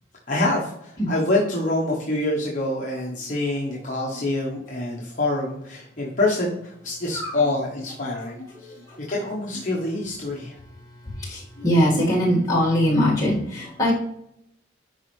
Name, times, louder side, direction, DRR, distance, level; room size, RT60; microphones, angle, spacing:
voice 1, 0.3-8.7 9.1-10.5, left 2 dB, 40° left, -4 dB, 1.1 m, -26 dB
voice 2, 11.3-13.9, equal, 20° left, -6 dB, 2.1 m, -21 dB
10.5 x 4.2 x 3.3 m, 0.77 s
head